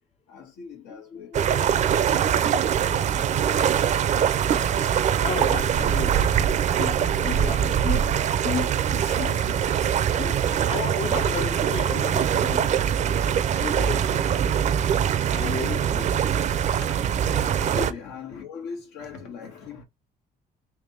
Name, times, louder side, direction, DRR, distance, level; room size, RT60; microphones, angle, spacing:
voice 1, 0.3-1.3 7.1-7.4 8.9-9.9 10.2-10.7 16.6-17.0 17.3-19.8, left 5 dB, 85° left, 1.4 m, -41 dB
voice 2, 0.9-3.3 4.5-4.7 5.2-6.3 6.8-9.5 10.2-13.0 13.6-14.5 15.3-16.2 17.8-18.0, left 6 dB, 40° left, 0.5 m, -34 dB
sound 1, 1.3-17.9, right 9 dB, 45° right, 0.5 m, -23 dB
3.4 x 3.0 x 3.8 m
cardioid pair, 110°, 17 cm